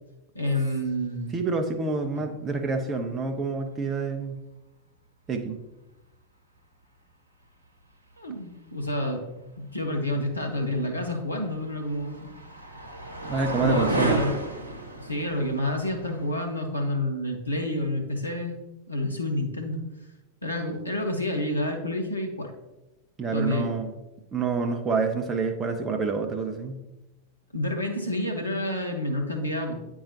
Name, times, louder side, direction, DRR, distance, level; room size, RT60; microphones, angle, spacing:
voice 1, 0.3-1.4 2.1-2.2 8.2-9.2 9.6-12.3 13.6-14.4 15.0-18.6 18.9-19.8 20.4-22.5 23.3-23.7 27.5-29.8, left 1 dB, 85° left, 2 dB, 1.0 m, -29 dB
voice 2, 1.3-4.4 5.3-5.6 13.2-14.3 23.2-23.9 24.3-26.8, right 4 dB, 20° right, 4 dB, 0.6 m, -27 dB
sound 1, 11.0-16.3, right 1 dB, 80° right, 0.9 m, -32 dB
8.7 x 4.6 x 2.8 m, 1.0 s
figure-of-eight pair, 90°, 0 cm